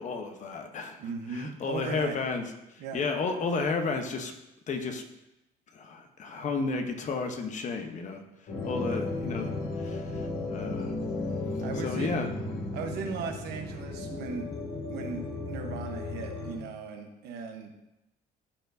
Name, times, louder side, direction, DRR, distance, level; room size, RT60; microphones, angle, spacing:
voice 1, 0.0-2.4 2.7-4.3 4.7-5.0 5.7-10.9 11.8-12.3 13.0-13.2, left 4 dB, 45° left, 5 dB, 1.0 m, -33 dB
voice 2, 1.0-2.2 2.8-3.0 8.9-9.0 11.6-12.2 12.7-14.5 14.9-17.8, right 5 dB, 80° right, 4 dB, 1.1 m, -37 dB
sound 1, 8.5-16.6, left 2 dB, 70° left, 2.4 m, -34 dB
12.5 x 4.5 x 2.7 m, 0.92 s
cardioid pair, 110°, 17 cm